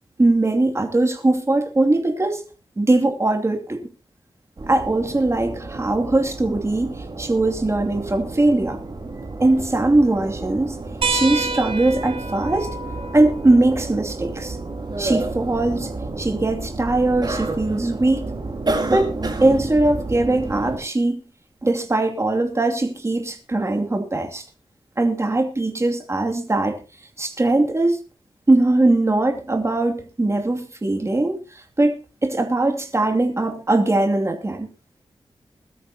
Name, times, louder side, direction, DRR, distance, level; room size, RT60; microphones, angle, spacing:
voice 1, 0.2-2.4 2.8-3.8 4.7-8.8 9.4-10.8 11.1-12.8 13.1-14.6 15.0-18.4 18.9-19.1 19.4-21.2 21.6-24.4 25.0-26.8 27.2-28.0 28.5-34.7, right 2 dB, 30° right, 2.6 m, -20 dB
sound 1, 4.6-20.8, right 2 dB, 45° right, 4.3 m, -30 dB
sound 2, 11.0-16.1 17.6-17.7 19.4-19.5, right 3 dB, 75° right, 4.0 m, -31 dB
21.0 x 13.0 x 2.9 m
wide cardioid pair, 85°, 10 cm